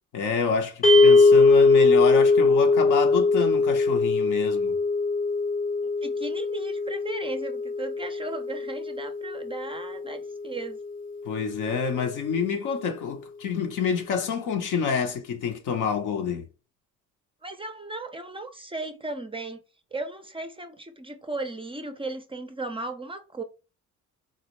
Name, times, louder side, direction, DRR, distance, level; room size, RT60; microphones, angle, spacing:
voice 1, 0.1-4.8 11.2-16.5, left 6 dB, 65° left, 0.9 m, -28 dB
sound 1, 0.8-11.1, left 3 dB, 25° left, 0.7 m, -21 dB
voice 2, 6.0-10.8 17.4-19.6 19.9-23.4, right 2 dB, 15° right, 0.5 m, -36 dB
4.0 x 2.0 x 3.0 m
cardioid pair, 85°, 33 cm